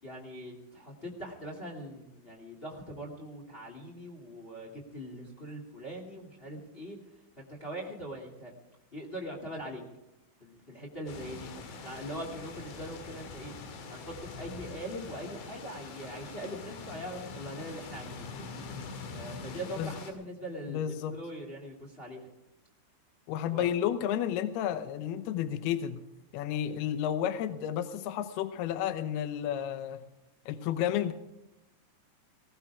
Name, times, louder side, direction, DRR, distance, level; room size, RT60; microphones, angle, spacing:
voice 1, 0.0-8.5 8.9-9.8 10.4-13.5 13.9-18.3 19.1-22.3 23.5-23.7, equal, 25° left, 0 dB, 1.1 m, -42 dB
sound 1, 11.1-20.1, left 4 dB, 65° left, 4.3 m, -44 dB
voice 2, 20.7-21.2 23.3-26.0 26.3-30.0 30.5-31.1, left 10 dB, 85° left, 11 dB, 2.2 m, -31 dB
19.5 x 18.0 x 3.6 m, 0.91 s
omnidirectional pair, 5.7 m